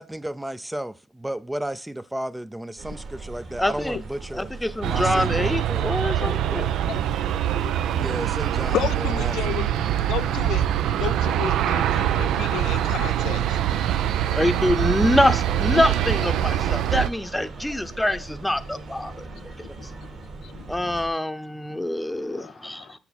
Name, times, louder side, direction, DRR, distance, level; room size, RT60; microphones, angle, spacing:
voice 1, 0.0-4.5 4.8-5.9 7.9-9.7, right 1 dB, 10° right, 0.4 m, -33 dB
sound 1, 2.8-21.1, right 3 dB, 60° right, 2.7 m, -40 dB
voice 2, 3.6-4.0 4.3-6.6 14.3-19.1 19.8-19.9 20.7-22.9, left 1 dB, 10° left, 0.8 m, -25 dB
Aircraft, 4.8-17.1, right 11 dB, 80° right, 0.5 m, -24 dB
voice 3, 8.7-9.7 10.1-10.6 11.0-13.6 15.5-15.8 16.3-16.4 19.3-19.9 20.4-20.7 22.3-22.9, left 12 dB, 80° left, 0.3 m, -33 dB
7.0 x 6.7 x 4.2 m
cardioid pair, 90°, 0 cm